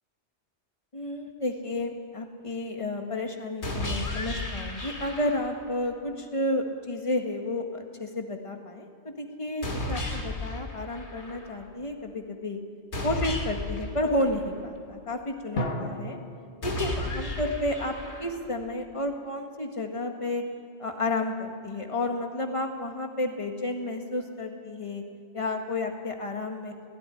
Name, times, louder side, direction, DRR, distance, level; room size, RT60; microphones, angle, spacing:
voice 1, 0.9-12.6 13.0-16.2 16.6-20.4 20.8-25.0 25.3-26.9, left 1 dB, 30° left, 3 dB, 1.8 m, -31 dB
sound 1, 3.6-5.6 9.6-11.6 12.9-14.9 16.6-18.6, left 1 dB, 90° left, 2.6 m, -34 dB
sound 2, 15.5-18.3, equal, 60° left, 1.8 m, -36 dB
16.5 x 16.0 x 10.0 m, 2.2 s
omnidirectional pair, 1.1 m